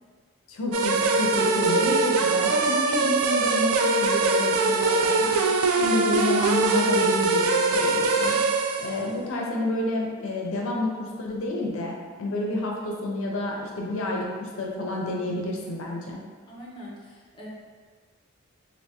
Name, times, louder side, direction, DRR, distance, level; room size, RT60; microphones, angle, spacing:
voice 1, 0.5-5.4 5.8-8.4 8.8-16.2, left 2 dB, 70° left, -1 dB, 0.5 m, -29 dB
sound 1, 0.7-9.0, right 3 dB, 85° right, 0.3 m, -22 dB
voice 2, 16.4-17.5, equal, 20° left, -5 dB, 0.6 m, -44 dB
3.3 x 2.6 x 2.8 m, 1.5 s
head